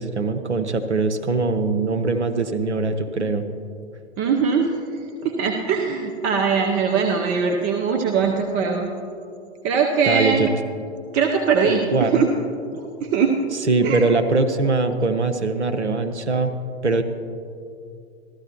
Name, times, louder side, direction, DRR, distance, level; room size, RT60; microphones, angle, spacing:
voice 1, 0.0-3.4 10.0-10.5 11.6-12.2 13.7-16.5 16.8-17.0, right 3 dB, 85° right, 7 dB, 0.8 m, -22 dB
voice 2, 4.2-4.7 5.2-8.9 9.6-10.5 11.1-12.3 12.7-13.4 13.8-14.1, right 5 dB, 35° right, 2 dB, 0.8 m, -21 dB
14.5 x 13.0 x 2.9 m, 2.5 s
figure-of-eight pair, 100°, 34 cm